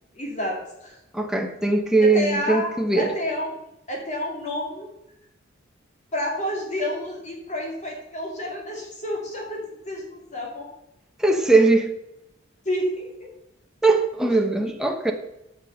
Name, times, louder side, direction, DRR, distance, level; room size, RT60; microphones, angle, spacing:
voice 1, 0.1-1.0 2.0-3.6 3.9-4.9 6.1-10.7 12.6-13.3, left 1 dB, 35° left, 2.9 m, -29 dB
voice 2, 1.1-3.1 11.2-11.9 13.8-15.1, right 3 dB, 5° right, 1.0 m, -20 dB
11.0 x 6.1 x 6.7 m
head